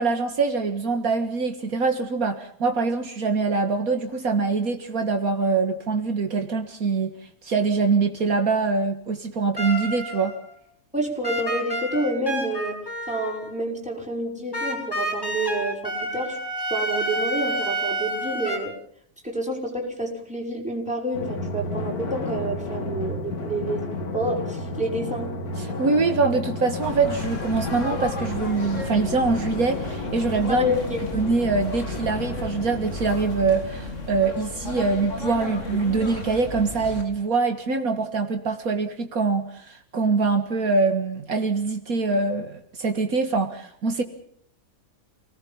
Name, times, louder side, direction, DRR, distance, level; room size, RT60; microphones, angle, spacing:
voice 1, 0.0-7.1 7.4-10.3 25.6-30.7 31.1-44.0, right 4 dB, 70° right, 6 dB, 2.1 m, -24 dB
sound 1, 9.6-10.6 11.2-13.5 14.5-18.6, right 1 dB, 15° left, 7.1 m, -29 dB
voice 2, 10.9-12.8 13.1-16.4 16.7-18.8 19.2-25.3 30.5-31.0, right 1 dB, 5° right, -1 dB, 5.8 m, -28 dB
Drum, 21.1-34.2, left 2 dB, 85° left, 2.8 m, -32 dB
sound 2, 26.8-37.0, left 2 dB, 55° left, 3.3 m, -35 dB
28.5 x 19.5 x 5.5 m, 0.64 s
omnidirectional pair, 1.6 m